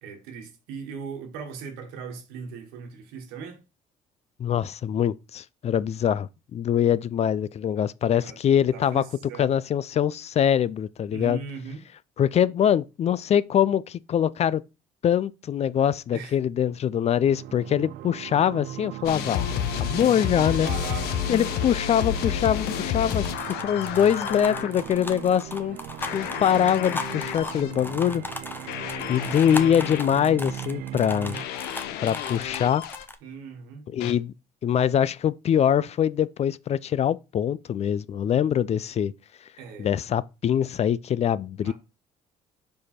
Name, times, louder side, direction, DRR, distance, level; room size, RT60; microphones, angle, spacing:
voice 1, 0.0-3.6 8.1-8.4 8.7-9.5 11.1-11.8 16.1-16.4 19.9-20.1 20.4-21.2 26.1-26.4 33.2-33.9 39.6-39.9 41.6-41.7, right 6 dB, 85° right, 1.4 m, -39 dB
voice 2, 4.4-9.0 9.4-11.4 12.2-14.6 15.0-19.5 19.8-20.7 21.3-25.8 26.1-28.2 29.1-31.4 32.0-32.8 33.9-34.3 34.6-39.1 39.8-41.7, left 9 dB, 40° left, 0.4 m, -23 dB
sound 1, 17.2-31.5, right 14 dB, 65° right, 0.4 m, -38 dB
sound 2, 19.0-24.7 26.0-27.7 28.7-30.0 31.3-33.0 34.0-34.1, left 10 dB, 75° left, 0.7 m, -31 dB
sound 3, 23.1-33.2, left 2 dB, 10° left, 0.9 m, -37 dB
5.0 x 4.7 x 4.3 m
supercardioid pair, 75°, 17 cm